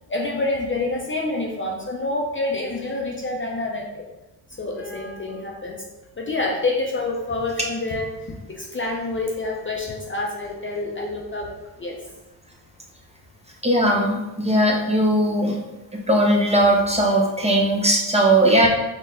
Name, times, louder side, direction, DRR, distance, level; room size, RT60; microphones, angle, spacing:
voice 1, 0.1-4.0 4.6-5.8 6.2-8.1 8.5-11.5 11.8-12.0, left 2 dB, 25° left, -1 dB, 0.6 m, -27 dB
voice 2, 13.6-15.6 16.1-18.7, right 1 dB, 15° right, -1 dB, 0.7 m, -18 dB
3.9 x 2.2 x 3.7 m, 1.0 s
supercardioid pair, 65°, 48 cm